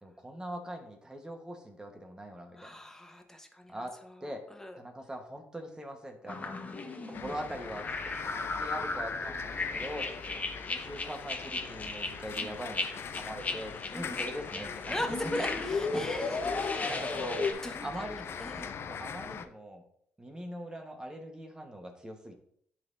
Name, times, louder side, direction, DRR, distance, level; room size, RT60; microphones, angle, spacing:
voice 1, 0.0-2.8 3.7-3.9 4.2-4.4 4.8-6.6 7.1-10.3 10.6-15.0 15.6-15.7 15.9-16.0 16.8-17.4 17.8-18.3 18.5-19.8 20.2-22.3, right 1 dB, 15° right, 3 dB, 1.4 m, -42 dB
voice 2, 2.6-4.8 12.4-12.5 13.9-14.2 14.9-16.9 17.6-18.8, left 1 dB, 10° left, 4 dB, 1.2 m, -40 dB
sound 1, 6.3-17.5, left 3 dB, 30° left, 1.3 m, -35 dB
sound 2, 7.1-19.5, left 7 dB, 50° left, 0.6 m, -42 dB
10.5 x 4.1 x 2.7 m, 0.67 s
supercardioid pair, 80°, 5 cm